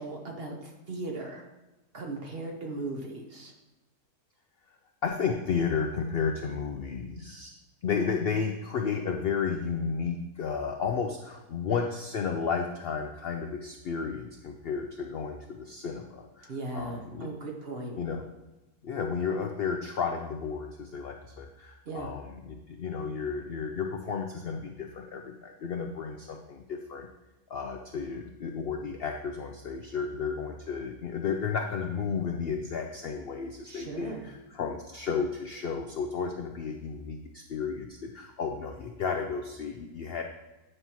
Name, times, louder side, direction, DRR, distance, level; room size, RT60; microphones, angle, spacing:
voice 1, 0.0-1.4 1.9-3.5 16.5-18.0 21.9-22.1 33.7-34.2, right 2 dB, 45° right, 1 dB, 1.0 m, -37 dB
voice 2, 5.0-7.5 7.8-17.3 18.0-18.2 18.8-27.1 27.5-40.2, left 6 dB, 70° left, 3 dB, 0.5 m, -33 dB
9.5 x 5.4 x 2.9 m, 1.0 s
omnidirectional pair, 1.7 m